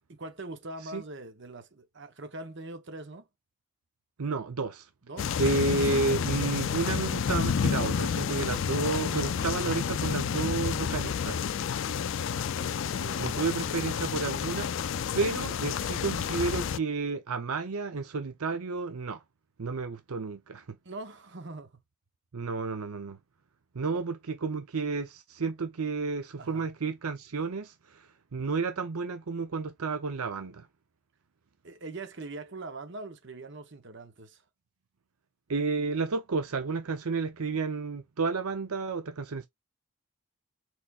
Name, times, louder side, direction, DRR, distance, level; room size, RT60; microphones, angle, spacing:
voice 1, 0.1-3.3 5.0-5.4 9.1-9.6 12.2-13.3 20.8-21.8 26.4-26.7 31.6-34.4, right 2 dB, 55° right, 1.0 m, -43 dB
voice 2, 4.2-4.9 5.4-11.5 13.2-19.2 19.6-20.6 22.3-23.2 23.7-30.7 35.5-39.5, right 4 dB, 80° right, 0.7 m, -31 dB
sound 1, 5.2-16.8, left 7 dB, 55° left, 0.4 m, -30 dB
4.3 x 4.2 x 2.4 m
head